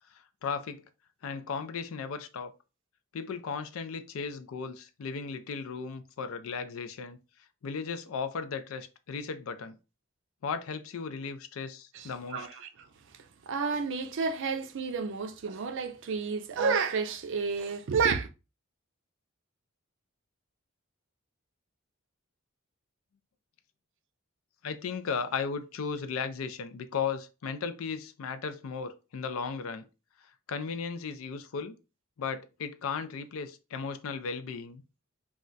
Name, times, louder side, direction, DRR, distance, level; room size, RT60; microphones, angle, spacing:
voice 1, 0.1-0.8 1.2-2.5 3.1-7.2 7.6-9.8 10.4-12.5 24.6-29.9 30.5-31.8 32.2-34.8, left 5 dB, 70° left, 0.4 m, -36 dB
voice 2, 11.9-12.9 13.5-18.3, right 5 dB, 60° right, 0.4 m, -30 dB
2.3 x 2.1 x 3.8 m
head